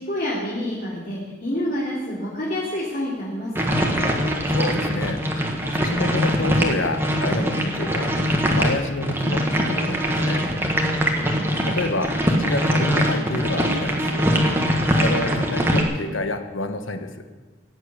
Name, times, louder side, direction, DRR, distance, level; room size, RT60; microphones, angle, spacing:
voice 1, 0.0-3.9 11.1-11.5, left 1 dB, 45° left, -7 dB, 3.2 m, -28 dB
sound 1, 3.5-15.8, equal, 10° right, 1.6 m, -22 dB
voice 2, 4.5-5.2 5.7-8.1 8.5-10.5 11.6-14.3 14.9-17.3, left 2 dB, 85° left, 7 dB, 1.4 m, -28 dB
17.0 x 9.4 x 8.4 m, 1.3 s
head